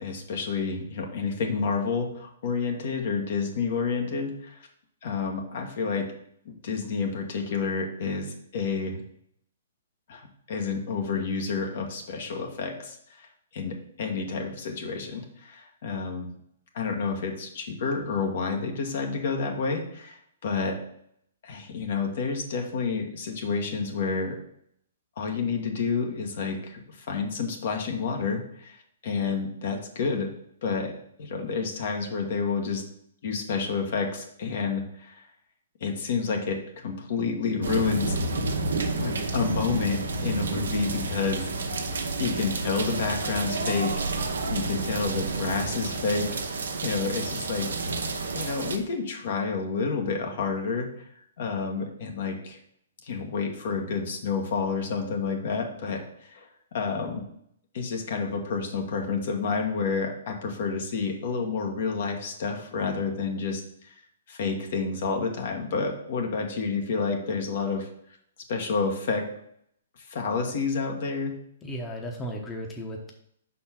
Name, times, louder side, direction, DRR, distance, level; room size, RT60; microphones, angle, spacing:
voice 1, 0.0-4.6 5.0-6.1 6.4-9.0 10.1-13.3 13.5-16.3 16.7-20.8 21.4-24.4 25.2-30.3 30.6-30.9 31.2-32.8 33.2-35.2 35.8-38.2 38.7-41.8 42.2-47.7 48.3-50.9 51.4-52.6 53.0-57.2 57.7-63.6 64.3-67.9 68.5-69.3 70.1-71.4, left 5 dB, 60° left, 2 dB, 1.3 m, -29 dB
sound 1, 37.6-48.8, right 3 dB, 80° right, 1.0 m, -30 dB
voice 2, 71.6-73.1, equal, 15° left, 0 dB, 1.0 m, -35 dB
5.4 x 4.2 x 5.8 m, 0.71 s
hypercardioid pair, 130°, 0 cm